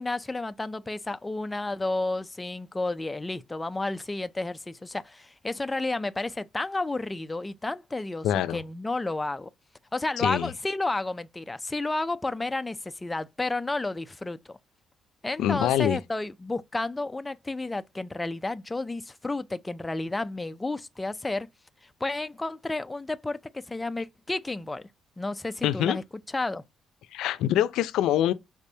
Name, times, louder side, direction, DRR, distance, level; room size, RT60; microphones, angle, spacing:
voice 1, 0.0-9.5 9.9-14.6 15.2-21.5 22.0-24.8 25.2-26.0 26.3-26.6, left 2 dB, 15° left, 0.3 m, -31 dB
voice 2, 8.2-8.6 10.2-10.5 15.4-16.0 25.6-26.0 27.1-28.3, left 11 dB, 85° left, 0.4 m, -24 dB
5.0 x 3.4 x 2.7 m
cardioid pair, 120°, 0 cm